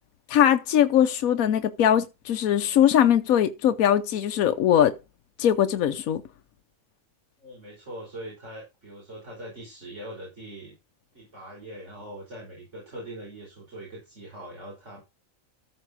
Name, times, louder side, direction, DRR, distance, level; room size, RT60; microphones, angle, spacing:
voice 1, 0.3-4.9 5.4-6.2, left 10 dB, 85° left, 1.2 m, -21 dB
voice 2, 7.4-10.8 11.1-15.0, right 1 dB, 55° right, 5.3 m, -42 dB
14.0 x 5.0 x 4.9 m
omnidirectional pair, 1.4 m